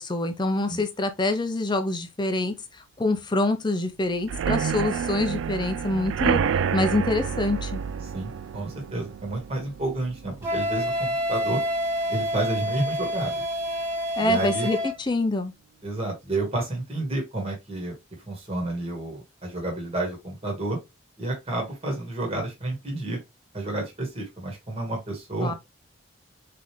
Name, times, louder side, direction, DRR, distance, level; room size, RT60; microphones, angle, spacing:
voice 1, 0.0-2.5 3.0-6.4 6.7-7.8 14.2-15.5 25.4-25.5, left 2 dB, 20° left, 0.5 m, -25 dB
sound 1, 4.2-11.9 12.3-12.7 12.9-13.0 13.4-13.5, right 7 dB, 75° right, 0.3 m, -29 dB
voice 2, 8.1-11.6 12.1-13.4 14.2-14.7 15.8-18.0 18.3-20.8 21.2-23.2 23.5-25.5, right 2 dB, 30° right, 1.5 m, -30 dB
Wind instrument woodwind instrument, 10.4-15.0, equal, 10° right, 1.4 m, -28 dB
4.0 x 3.3 x 3.0 m
head